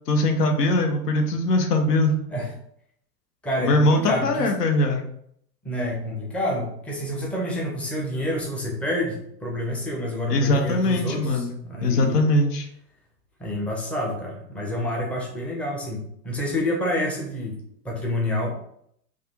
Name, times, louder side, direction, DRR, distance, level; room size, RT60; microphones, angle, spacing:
voice 1, 0.1-2.1 3.6-5.0 10.3-11.5 11.8-12.7, left 2 dB, 80° left, 4 dB, 0.8 m, -21 dB
voice 2, 3.4-4.5 5.6-12.3 13.4-18.5, left 1 dB, 5° left, -2 dB, 0.4 m, -28 dB
3.3 x 2.3 x 2.8 m, 0.69 s
figure-of-eight pair, 90°, 48 cm